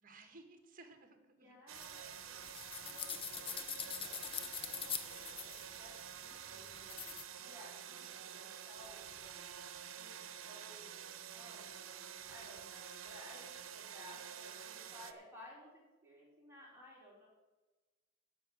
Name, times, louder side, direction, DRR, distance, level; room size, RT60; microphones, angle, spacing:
voice 1, 0.0-1.6, right 3 dB, 45° right, 6 dB, 1.6 m, -59 dB
voice 2, 1.4-2.5 2.8-9.5 9.9-11.7 12.3-17.3, left 1 dB, 10° right, -5 dB, 4.7 m, -58 dB
sound 1, 1.7-7.2, left 7 dB, 25° left, 0.9 m, -45 dB
sound 2, 1.7-15.1, right 9 dB, 90° right, 0.9 m, -49 dB
10.5 x 6.3 x 8.6 m, 1.2 s
head